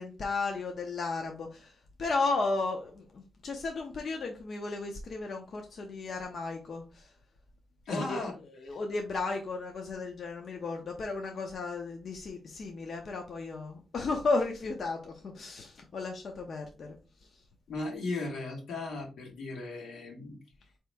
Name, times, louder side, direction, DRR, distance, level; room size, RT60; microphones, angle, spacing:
voice 1, 0.0-1.7 2.0-7.0 7.9-8.3 8.6-17.0, left 3 dB, 50° left, 3 dB, 0.6 m, -34 dB
voice 2, 7.9-8.4 8.7-8.8 17.7-20.4, left 2 dB, 85° left, -1 dB, 1.5 m, -36 dB
4.1 x 2.9 x 3.3 m, 0.34 s
wide cardioid pair, 145°, 0 cm